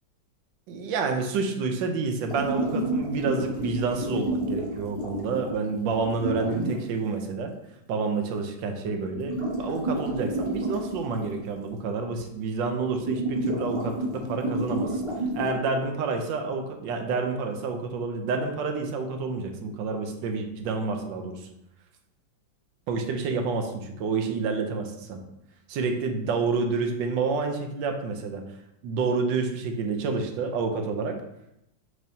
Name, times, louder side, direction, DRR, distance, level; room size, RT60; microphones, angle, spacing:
voice 1, 0.7-7.5 7.9-15.0 15.3-21.5 22.9-25.2 25.7-28.4 28.8-31.1, right 4 dB, 75° right, 4 dB, 1.3 m, -29 dB
sound 1, 2.3-6.8 8.9-9.0 9.1-11.4 11.7-11.8 12.2-12.3 12.8-15.5, right 1 dB, 55° right, 0.3 m, -30 dB
6.1 x 3.1 x 2.7 m, 0.83 s
omnidirectional pair, 2.1 m